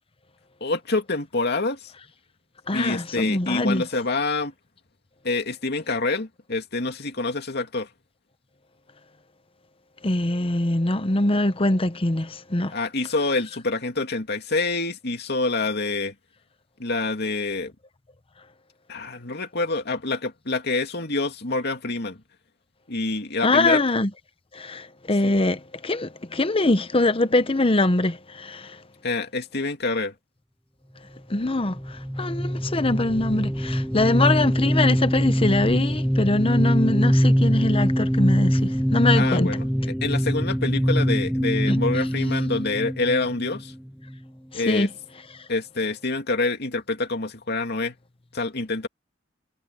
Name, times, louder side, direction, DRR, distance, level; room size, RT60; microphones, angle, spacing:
voice 1, 0.6-1.9 2.7-4.5 5.2-7.9 12.7-16.1 16.8-17.7 18.9-22.2 22.9-23.8 25.2-25.3 29.0-30.1 39.1-43.7 44.5-44.9 45.5-47.9 48.3-48.9, left 3 dB, 60° left, 2.6 m, -26 dB
voice 2, 2.7-3.8 10.0-12.7 23.4-24.1 24.5-28.8 31.3-39.6 41.7-41.8 44.5-44.9, left 2 dB, 30° left, 1.0 m, -23 dB
sound 1, 31.7-44.2, equal, ahead, 0.4 m, -23 dB
head